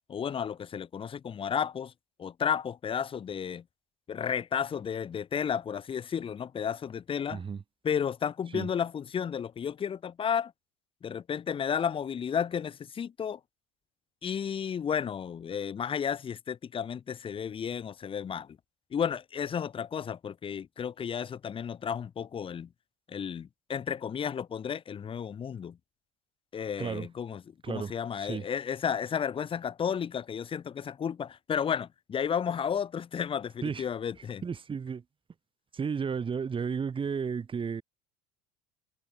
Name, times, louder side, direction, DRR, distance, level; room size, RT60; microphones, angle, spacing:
voice 1, 0.1-1.9 2.2-3.6 4.1-7.4 7.8-10.5 11.0-13.4 14.2-18.6 18.9-22.7 23.1-25.8 26.5-34.4, left 7 dB, 30° left, 1.2 m, -32 dB
voice 2, 7.3-7.6 8.5-8.7 26.8-27.1 27.6-27.9 28.2-28.5 33.6-33.8 34.4-35.0 35.7-37.8, right 6 dB, 30° right, 5.4 m, -33 dB
hypercardioid pair, 75°, 18 cm